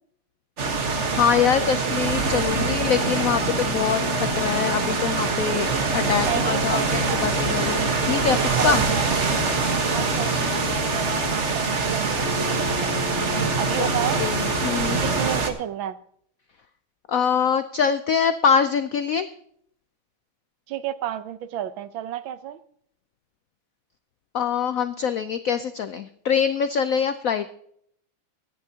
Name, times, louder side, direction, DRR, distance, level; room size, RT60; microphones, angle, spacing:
sound 1, 0.6-15.5, right 4 dB, 40° right, 1.4 m, -24 dB
voice 1, 1.1-8.8 13.8-13.9 14.2-15.0 17.1-19.3 24.3-27.5, left 7 dB, 80° left, 11 dB, 0.7 m, -24 dB
sound 2, 2.5-5.1 6.0-8.3 9.3-11.4 12.2-15.2, left 9 dB, 65° left, 1.1 m, -34 dB
voice 2, 6.2-7.2 8.6-9.1 9.9-13.0 13.6-14.2 15.0-16.0 20.7-22.6, right 11 dB, 75° right, 13 dB, 1.5 m, -31 dB
24.0 x 9.8 x 2.8 m, 0.67 s
omnidirectional pair, 2.2 m